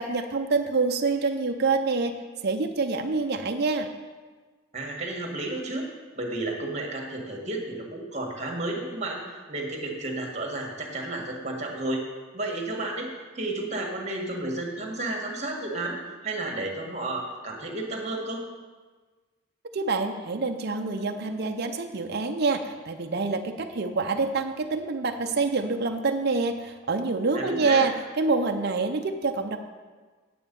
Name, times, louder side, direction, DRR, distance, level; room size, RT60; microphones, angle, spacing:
voice 1, 0.0-2.2 2.4-3.9 19.7-29.6, right 4 dB, 50° right, 5 dB, 0.6 m, -26 dB
voice 2, 4.7-5.9 6.1-12.0 12.3-13.1 13.4-16.0 16.2-18.4 27.3-27.8, right 2 dB, 35° right, 1 dB, 1.7 m, -32 dB
9.3 x 7.7 x 5.3 m, 1.4 s
head